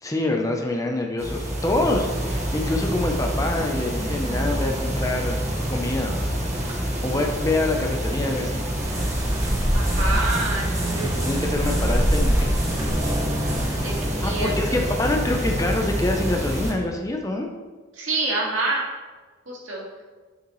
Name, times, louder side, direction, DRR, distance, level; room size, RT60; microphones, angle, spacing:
voice 1, 0.0-5.4 5.7-6.3 6.6-8.6 11.1-12.6 14.2-17.5, left 2 dB, 15° left, 2 dB, 0.7 m, -26 dB
sound 1, 1.2-16.7, equal, 35° right, 1.5 m, -27 dB
sound 2, 8.8-14.3, right 1 dB, 15° right, 1.3 m, -25 dB
voice 2, 9.7-11.2 13.8-14.8 17.9-18.8 19.5-19.8, right 2 dB, 80° right, -3 dB, 2.1 m, -27 dB
9.6 x 6.7 x 3.1 m, 1.4 s
head